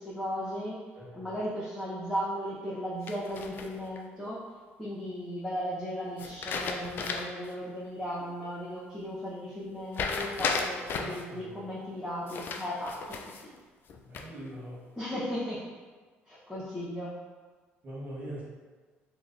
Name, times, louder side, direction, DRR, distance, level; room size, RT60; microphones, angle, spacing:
voice 1, 0.0-0.8 1.1-4.4 4.8-13.3 15.0-15.7 16.3-17.2, equal, 5° right, -11 dB, 1.0 m, -36 dB
voice 2, 0.9-1.3 11.0-11.7 14.0-14.8 17.8-18.4, right 1 dB, 45° right, -6 dB, 1.3 m, -42 dB
sound 1, 3.1-4.0 6.2-7.5 7.8-7.9 9.9-11.2 12.3-13.5 13.9-14.5, left 4 dB, 50° left, 0.4 m, -34 dB
3.7 x 3.0 x 2.6 m, 1.4 s
cardioid pair, 100°, 5 cm